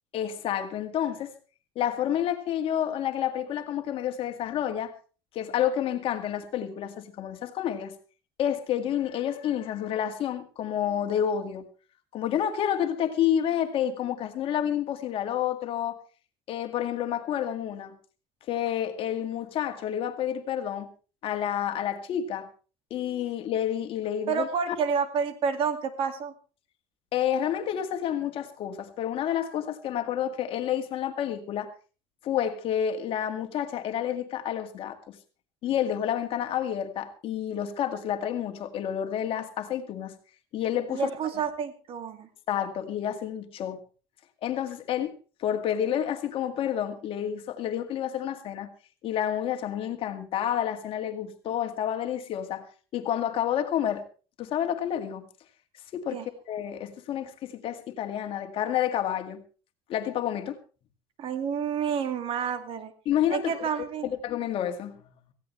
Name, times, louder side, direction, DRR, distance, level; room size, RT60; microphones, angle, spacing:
voice 1, 0.1-1.3 1.8-4.9 5.3-7.9 8.4-11.6 12.1-16.0 16.5-17.9 18.5-20.9 21.2-22.5 22.9-24.8 27.1-31.7 32.2-35.2 35.6-40.1 40.5-41.1 42.5-43.8 44.4-45.1 45.4-48.7 49.0-52.7 52.9-54.0 54.4-55.3 55.9-56.2 56.5-59.4 59.9-60.6 63.1-63.5 64.0-64.9, left 10 dB, 55° left, 2.1 m, -29 dB
voice 2, 24.3-26.3 40.9-42.3 56.1-56.3 61.2-62.9 63.3-64.1, right 6 dB, 50° right, 2.3 m, -29 dB
18.0 x 16.0 x 3.3 m
cardioid pair, 125°, 11 cm